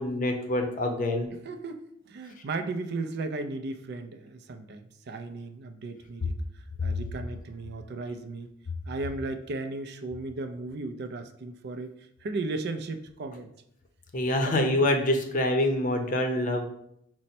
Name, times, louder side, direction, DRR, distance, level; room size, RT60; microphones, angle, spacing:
voice 1, 0.0-1.3 14.1-16.6, left 1 dB, 40° left, 4 dB, 0.6 m, -26 dB
voice 2, 1.4-8.5 8.9-11.9 12.2-13.5 14.4-14.6, right 3 dB, 55° right, 8 dB, 0.4 m, -36 dB
5.2 x 2.1 x 4.2 m, 0.74 s
head